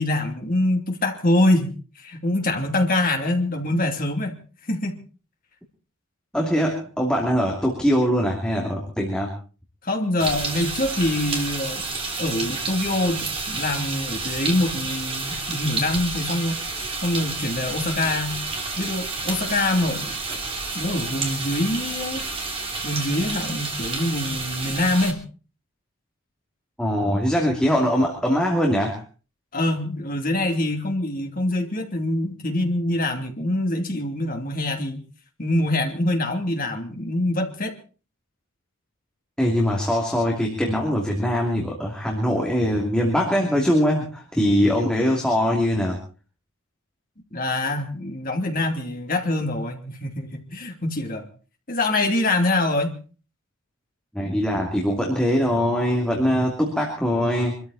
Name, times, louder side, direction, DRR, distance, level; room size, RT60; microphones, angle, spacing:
voice 1, 0.0-1.7 2.0-4.4 4.7-5.0 9.8-11.8 12.2-16.6 17.0-18.4 18.8-20.2 20.7-22.2 22.8-25.2 29.5-35.0 35.4-37.7 47.3-51.3 51.7-53.0, left 1 dB, 40° left, 3 dB, 2.9 m, -24 dB
voice 2, 6.3-9.3 26.8-29.0 39.4-46.0 54.1-57.6, equal, 5° left, -1 dB, 2.7 m, -22 dB
sound 1, 10.2-25.1, right 3 dB, 25° right, 3.0 m, -30 dB
25.0 x 13.5 x 4.2 m, 0.36 s
head